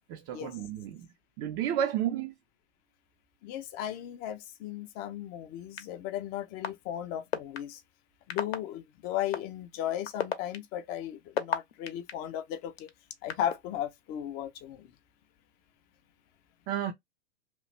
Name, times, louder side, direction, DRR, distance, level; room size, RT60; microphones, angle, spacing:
voice 1, 0.1-1.1 1.4-2.3 16.7-16.9, right 10 dB, 30° right, 0.4 m, -31 dB
voice 2, 3.4-7.8 8.3-12.9 13.2-14.9, left 11 dB, 30° left, 0.5 m, -36 dB
sound 1, 5.8-5.9 6.6-6.7 7.3-7.6 8.3-8.6 9.3-9.4 10.0-12.1 12.8-13.5, left 8 dB, 70° left, 0.8 m, -30 dB
3.0 x 2.3 x 3.1 m
figure-of-eight pair, 95°, 32 cm